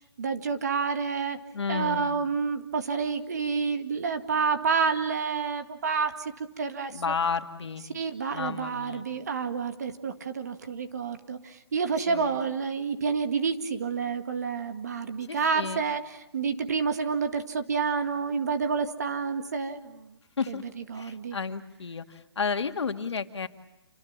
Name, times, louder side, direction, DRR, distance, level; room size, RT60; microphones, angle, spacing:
voice 1, 0.2-1.4 1.7-6.3 6.6-7.0 7.9-16.0 16.3-20.1 20.5-20.6 20.9-21.4, right 5 dB, 40° right, 8 dB, 1.9 m, -29 dB
voice 2, 1.5-2.2 6.9-7.8 8.3-9.1 12.1-12.4 15.3-15.8 20.4-20.6 20.9-23.5, left 5 dB, 85° left, 7 dB, 2.3 m, -32 dB
29.0 x 25.5 x 7.4 m, 0.90 s
hypercardioid pair, 180°, 14 cm